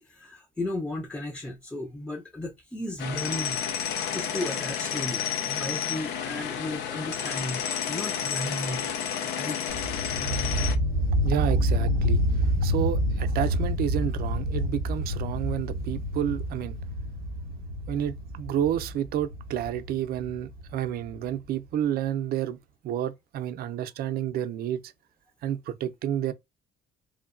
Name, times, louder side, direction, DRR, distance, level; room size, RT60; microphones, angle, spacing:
voice 1, 0.0-3.6 4.1-8.9 9.4-9.6, left 1 dB, 5° left, 0.5 m, -35 dB
sound 1, 3.0-10.8, left 8 dB, 80° left, 0.4 m, -31 dB
sound 2, 9.7-21.3, equal, 65° left, 1.1 m, -28 dB
voice 2, 11.2-16.8 17.9-22.6 22.8-24.9 25.4-26.3, right 10 dB, 65° right, 0.4 m, -30 dB
3.0 x 2.2 x 2.4 m
cardioid pair, 110°, 17 cm